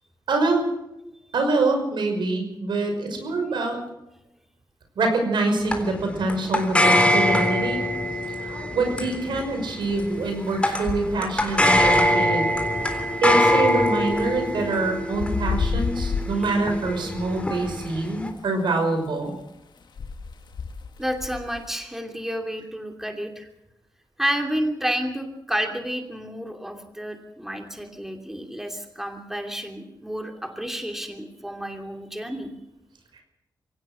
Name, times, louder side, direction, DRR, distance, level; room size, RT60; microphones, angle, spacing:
voice 1, 0.3-0.6 1.3-3.8 5.0-7.8 8.4-12.5 13.2-19.4, right 3 dB, 85° right, 5 dB, 5.9 m, -25 dB
sound 1, 5.7-18.3, left 1 dB, 15° left, 3.6 m, -24 dB
sound 2, 9.8-10.1 10.6-12.6 14.0-14.7 15.1-16.3 16.6-17.9 20.0-21.7, left 5 dB, 70° left, 1.8 m, -31 dB
voice 2, 21.0-23.5 24.2-32.5, equal, 5° right, 4 dB, 2.8 m, -30 dB
24.0 x 17.5 x 6.3 m, 0.87 s
wide cardioid pair, 100°, 8 cm